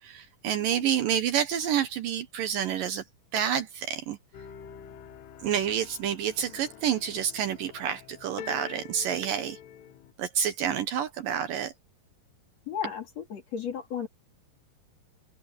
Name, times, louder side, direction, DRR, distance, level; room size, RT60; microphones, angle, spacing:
voice 1, 0.0-3.0 3.3-4.2 5.4-9.6 10.2-11.7, right 9 dB, 70° right, 2.4 m, -28 dB
sound 1, 4.3-10.1, left 9 dB, 80° left, 3.6 m, -46 dB
voice 2, 12.7-14.1, left 8 dB, 45° left, 2.9 m, -34 dB
omnidirectional pair, 4.7 m